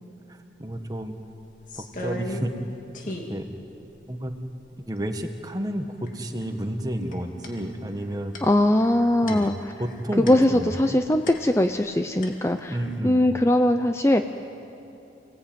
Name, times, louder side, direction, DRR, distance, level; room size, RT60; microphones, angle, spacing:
voice 1, 0.3-1.1 1.8-2.5 3.0-3.5 4.1-4.3 4.9-8.3 9.2-9.5 9.8-11.0 12.7-13.2, equal, 20° right, 5 dB, 1.6 m, -31 dB
sound 1, 0.7-0.8 1.1-2.7 2.9-3.4 3.9-4.0 4.3-5.0 6.1-6.4 6.7-11.9 12.2-13.0, left 1 dB, 45° left, 2.4 m, -38 dB
voice 2, 8.4-9.5 10.2-12.7 13.0-14.2, left 1 dB, 15° left, 7 dB, 0.6 m, -20 dB
29.0 x 18.5 x 9.2 m, 2.8 s
head